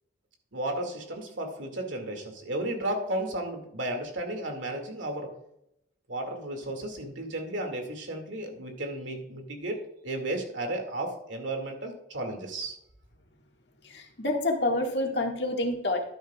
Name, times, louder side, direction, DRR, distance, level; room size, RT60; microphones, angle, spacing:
voice 1, 0.5-5.3 6.1-12.8, right 1 dB, 85° right, 3 dB, 2.3 m, -34 dB
voice 2, 13.9-16.0, left 2 dB, 65° left, 1 dB, 1.9 m, -28 dB
12.0 x 10.5 x 2.4 m, 0.77 s
head